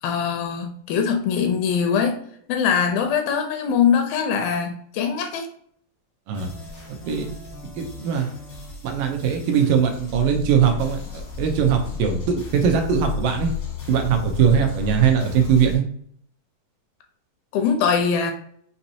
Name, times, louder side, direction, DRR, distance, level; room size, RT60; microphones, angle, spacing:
voice 1, 0.0-2.2 2.5-5.5 17.5-18.3, left 6 dB, 80° left, 5 dB, 2.3 m, -22 dB
sound 1, 6.3-15.8, left 5 dB, 60° left, 1.2 m, -33 dB
voice 2, 7.6-8.3 8.8-13.5 13.9-15.8, right 7 dB, 75° right, 3 dB, 2.1 m, -21 dB
6.1 x 2.8 x 2.7 m, 0.64 s
omnidirectional pair, 4.3 m